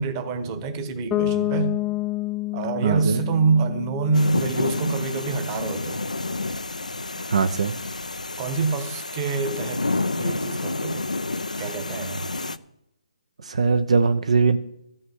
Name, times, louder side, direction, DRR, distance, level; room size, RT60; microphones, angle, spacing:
voice 1, 0.0-1.8 2.5-6.0 8.4-9.9 10.2-11.0 11.6-12.3, right 4 dB, 25° right, 1.2 m, -26 dB
Bass guitar, 1.1-5.0, left 17 dB, 15° left, 0.5 m, -29 dB
voice 2, 2.8-3.2 7.3-7.8 13.4-14.6, right 5 dB, 60° right, 0.7 m, -20 dB
sound 1, 4.1-12.6, left 2 dB, 85° left, 0.6 m, -29 dB
13.0 x 5.6 x 8.0 m
figure-of-eight pair, 140°, 4 cm